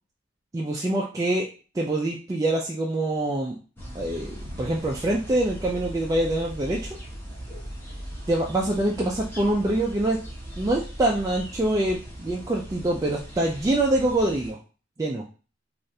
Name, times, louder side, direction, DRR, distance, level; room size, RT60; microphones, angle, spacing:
voice 1, 0.5-1.5 1.7-3.6 3.9-7.0 8.3-10.2 10.6-14.6 15.0-15.3, right 1 dB, 15° right, -3 dB, 0.3 m, -25 dB
sound 1, 3.8-14.5, equal, 10° left, 0.8 m, -39 dB
3.2 x 2.4 x 2.7 m, 0.36 s
head